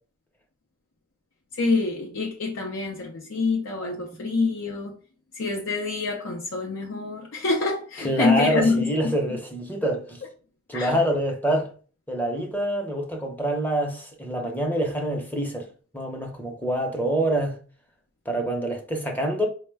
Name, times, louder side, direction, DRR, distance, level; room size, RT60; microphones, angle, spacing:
voice 1, 1.5-4.9 5.3-8.9 10.7-11.0, left 3 dB, 70° left, 0.6 m, -26 dB
voice 2, 8.0-10.2 10.7-11.7 12.1-15.7 15.9-17.6 18.3-19.5, right 1 dB, 10° left, 0.7 m, -26 dB
4.3 x 2.1 x 3.3 m
head